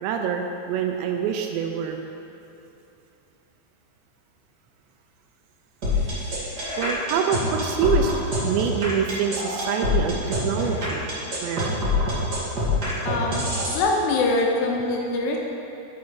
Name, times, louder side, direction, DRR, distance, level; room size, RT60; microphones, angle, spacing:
voice 1, 0.0-2.0 6.8-8.1 8.4-11.0 11.4-11.7, right 7 dB, 80° right, 4 dB, 2.7 m, -26 dB
sound 1, 5.8-13.8, left 2 dB, 55° right, 1.0 m, -25 dB
voice 2, 13.1-13.4 13.7-15.4, left 3 dB, 80° left, -1 dB, 2.8 m, -23 dB
9.5 x 6.1 x 4.7 m, 2.8 s
omnidirectional pair, 5.2 m